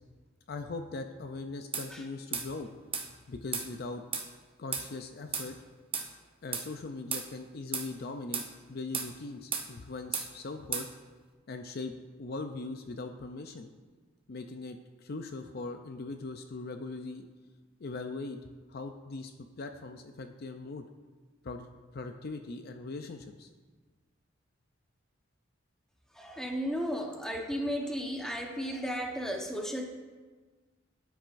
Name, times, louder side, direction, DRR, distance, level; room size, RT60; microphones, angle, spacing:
voice 1, 0.5-2.7 3.3-4.0 4.6-5.5 6.4-8.4 8.7-10.9 11.5-11.9 12.2-13.7 14.3-17.3 17.8-18.4 18.7-20.8 21.4-21.7 21.9-23.5, left 3 dB, 50° left, 6 dB, 0.5 m, -40 dB
sound 1, 1.7-1.9 2.3-2.5 2.9-3.1 3.5-3.7 4.1-4.3 4.7-4.9 5.3-5.5 5.9-6.1 6.5-6.7 7.1-7.3 7.7-7.9 8.3-8.5 8.9-9.1 9.5-9.7 10.1-10.3 10.7-10.9, right 6 dB, 25° right, 0.9 m, -33 dB
voice 2, 26.1-29.8, equal, 5° left, 1 dB, 1.0 m, -34 dB
12.5 x 9.3 x 2.5 m, 1.4 s
head